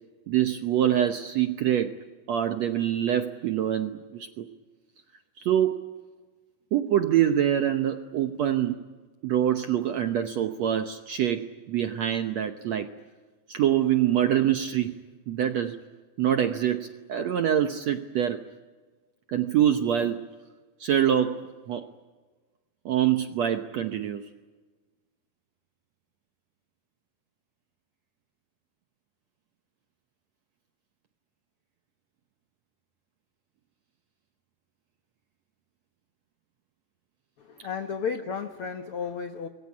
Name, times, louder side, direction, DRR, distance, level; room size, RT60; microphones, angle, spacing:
voice 1, 0.3-2.0 2.3-4.5 5.4-5.9 6.7-8.8 9.2-12.9 13.5-14.9 15.3-15.8 16.2-18.5 19.3-20.3 20.8-21.9 22.8-24.3, right 10 dB, 70° right, 7 dB, 1.6 m, -25 dB
voice 2, 37.4-39.5, left 6 dB, 75° left, 7 dB, 1.3 m, -33 dB
27.0 x 22.0 x 8.6 m, 1.3 s
omnidirectional pair, 4.2 m